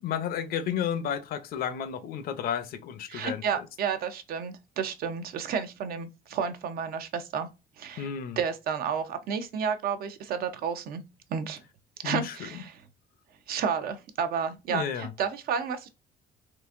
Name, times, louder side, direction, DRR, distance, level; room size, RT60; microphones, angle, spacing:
voice 1, 0.0-3.4 8.0-8.4 12.0-12.3 14.7-15.1, left 8 dB, 65° left, 0.6 m, -32 dB
voice 2, 3.1-7.5 7.8-11.0 11.3-11.6 12.0-12.8 13.5-15.9, right 7 dB, 60° right, 0.6 m, -31 dB
3.8 x 2.5 x 2.5 m
cardioid pair, 110°, 17 cm